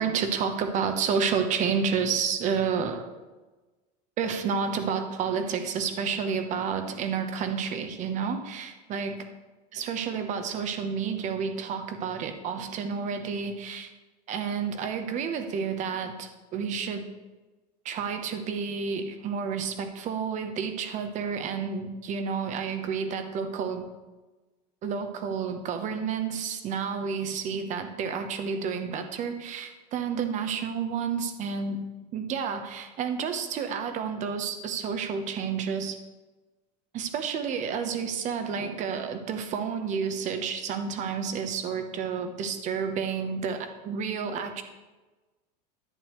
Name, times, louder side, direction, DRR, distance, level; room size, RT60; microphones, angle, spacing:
voice 1, 0.0-3.0 4.2-9.1 9.7-13.9 14.3-17.0 17.8-23.9 24.8-31.8 32.1-36.0 36.9-44.6, right 6 dB, 35° right, 7 dB, 1.0 m, -30 dB
11.0 x 8.7 x 3.2 m, 1.2 s
supercardioid pair, 140°, 20 cm